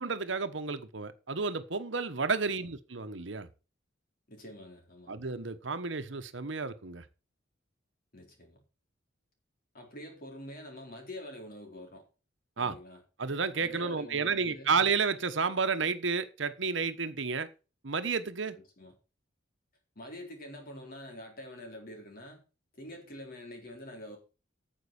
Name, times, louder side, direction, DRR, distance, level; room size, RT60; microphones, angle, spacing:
voice 1, 0.0-3.5 5.1-7.0 12.6-12.8 13.2-17.5 17.8-18.6, right 5 dB, 70° right, 1.1 m, -31 dB
voice 2, 4.3-5.1 8.1-8.6 9.7-12.0 12.6-13.0 13.6-14.7 18.5-18.9 20.0-22.4 22.7-24.2, left 1 dB, 50° left, 4.2 m, -46 dB
9.6 x 7.6 x 7.0 m
head